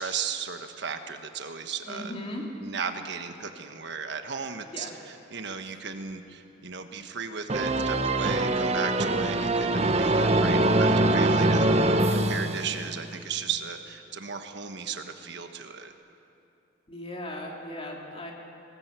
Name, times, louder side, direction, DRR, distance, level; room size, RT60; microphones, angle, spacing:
voice 1, 0.0-2.1 2.6-15.9, right 6 dB, 65° right, 7 dB, 1.2 m, -36 dB
voice 2, 1.8-2.5 4.7-4.9 16.9-18.3, left 1 dB, 30° left, 0 dB, 3.0 m, -37 dB
sound 1, 7.5-13.1, right 2 dB, 35° right, 0.9 m, -23 dB
22.0 x 18.5 x 8.2 m, 2.6 s
head